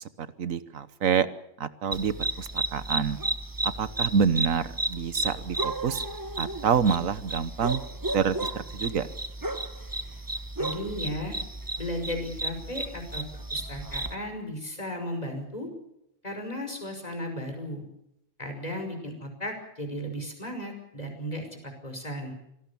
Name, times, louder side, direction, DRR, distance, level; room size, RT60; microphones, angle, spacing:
voice 1, 0.2-1.3 1.6-3.2 3.8-6.0 6.4-7.8 8.1-9.1, right 6 dB, 85° right, 14 dB, 1.5 m, -27 dB
sound 1, 1.9-14.1, right 2 dB, 15° right, 1.1 m, -33 dB
voice 2, 10.6-11.4 11.8-13.2 13.5-15.7 16.2-17.9 18.4-22.3, equal, 30° left, 5 dB, 5.8 m, -35 dB
26.0 x 18.0 x 7.1 m, 0.81 s
omnidirectional pair, 1.4 m